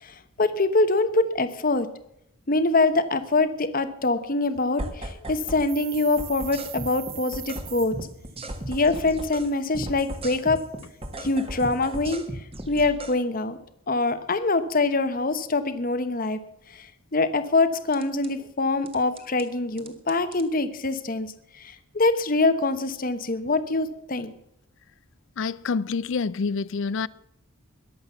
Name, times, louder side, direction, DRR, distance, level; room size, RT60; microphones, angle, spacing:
voice 1, 0.0-1.9 2.5-8.0 8.7-10.6 11.2-12.2 12.7-13.6 13.9-16.4 16.8-16.9 17.1-21.3 21.6-24.3, left 3 dB, 40° left, 1.1 m, -24 dB
sound 1, 4.8-5.7 5.9-9.5 9.7-13.1 17.9-18.3 18.9-19.4 19.8-20.4, right 1 dB, 25° right, 1.7 m, -36 dB
sound 2, 5.7-7.9, right 12 dB, 85° right, 2.1 m, -40 dB
voice 2, 25.4-27.1, left 4 dB, 60° left, 0.4 m, -27 dB
21.5 x 7.8 x 5.8 m
head